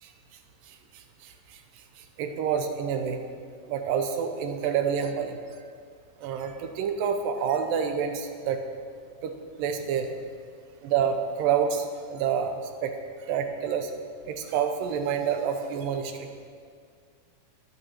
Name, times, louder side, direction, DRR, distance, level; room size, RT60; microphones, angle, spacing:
voice 1, 0.7-1.6 2.0-3.2 3.7-5.4 6.2-8.6 9.2-9.3 9.6-10.1 10.8-13.0 13.2-13.9 14.3-16.3, right 7 dB, 90° right, 6 dB, 2.6 m, -28 dB
19.0 x 6.7 x 4.5 m, 2.1 s
omnidirectional pair, 3.9 m